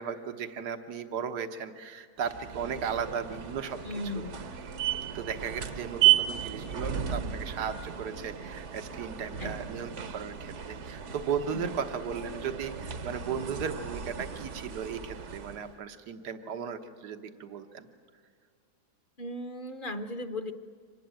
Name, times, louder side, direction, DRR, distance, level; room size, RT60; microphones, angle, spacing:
voice 1, 0.0-3.8 4.1-4.2 5.1-17.9, right 7 dB, 80° right, 8 dB, 1.7 m, -36 dB
sound 1, 2.2-15.7, right 11 dB, 50° right, 1.1 m, -33 dB
voice 2, 3.8-4.5 9.4-9.8 11.5-11.7 19.2-20.5, left 2 dB, 40° left, 9 dB, 1.0 m, -37 dB
25.5 x 19.0 x 9.0 m, 2.1 s
omnidirectional pair, 1.7 m